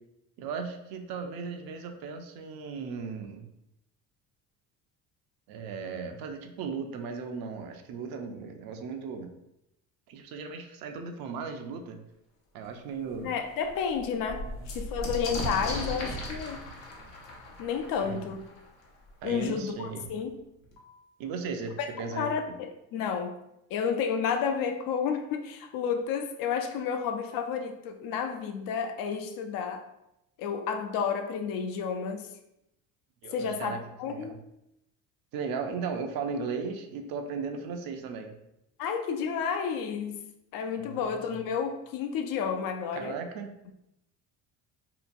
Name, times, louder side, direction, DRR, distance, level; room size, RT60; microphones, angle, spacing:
voice 1, 0.4-3.5 5.5-9.3 10.1-12.0 12.5-13.3 14.6-14.7 18.0-18.3 19.2-20.0 21.2-22.3 33.2-33.8 34.1-34.4 35.3-38.3 40.8-41.4 42.9-43.6, right 5 dB, 60° right, 5 dB, 0.5 m, -36 dB
sound 1, 12.6-12.7 13.2-13.3 13.5-19.1 20.0-20.1 20.4-21.0, left 1 dB, 85° left, 0.8 m, -37 dB
voice 2, 13.2-14.5 14.7-16.6 17.6-18.5 19.2-20.3 21.8-23.3 23.7-29.8 30.4-32.3 33.3-34.4 38.8-40.2 40.5-43.1, left 6 dB, 60° left, 6 dB, 0.5 m, -31 dB
2.8 x 2.2 x 2.5 m, 0.84 s
supercardioid pair, 70°, 40 cm